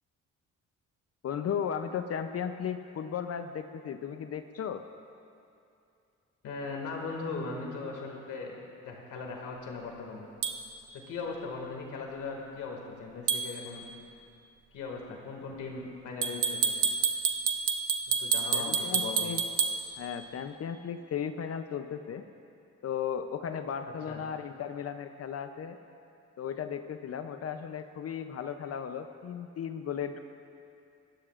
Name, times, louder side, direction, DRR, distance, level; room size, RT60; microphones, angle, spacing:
voice 1, 1.2-4.9 18.5-19.4 20.0-22.2 22.8-25.8 26.4-30.2, left 8 dB, 55° left, 8 dB, 0.7 m, -35 dB
voice 2, 6.4-8.6 8.8-10.3 10.9-13.8 14.7-16.8 18.1-19.3 24.1-24.2, left 4 dB, 85° left, 0 dB, 2.2 m, -39 dB
sound 1, 10.4-10.6 13.3-13.5 16.2-19.8, right 6 dB, 80° right, 1.1 m, -28 dB
26.0 x 12.5 x 2.5 m, 2.6 s
cardioid pair, 90°, 30 cm